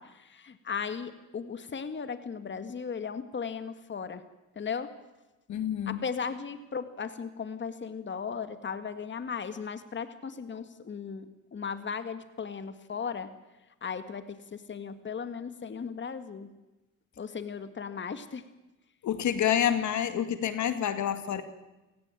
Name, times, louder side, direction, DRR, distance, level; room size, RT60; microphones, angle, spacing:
voice 1, 0.0-4.2 4.6-4.9 5.9-13.3 13.8-16.5 17.2-18.4, left 6 dB, 40° left, 10 dB, 2.0 m, -36 dB
voice 2, 5.5-6.0 19.0-21.4, left 10 dB, 70° left, 10 dB, 2.3 m, -28 dB
28.5 x 17.5 x 9.1 m, 1.1 s
cardioid pair, 90°, 30 cm